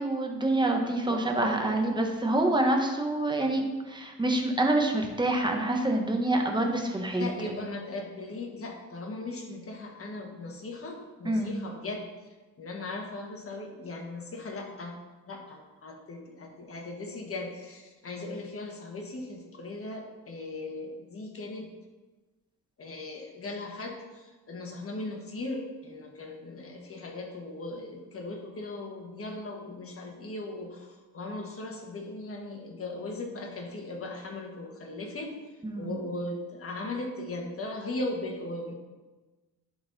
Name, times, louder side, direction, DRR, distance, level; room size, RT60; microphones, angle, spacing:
voice 1, 0.0-7.6 11.2-11.6 35.6-36.0, right 1 dB, 10° right, 2 dB, 1.1 m, -27 dB
voice 2, 1.1-1.8 7.2-12.1 12.6-15.0 15.3-21.7 22.8-35.3 35.8-38.7, left 2 dB, 35° left, 1 dB, 1.5 m, -38 dB
11.0 x 3.9 x 4.1 m, 1.2 s
cardioid pair, 100°, 38 cm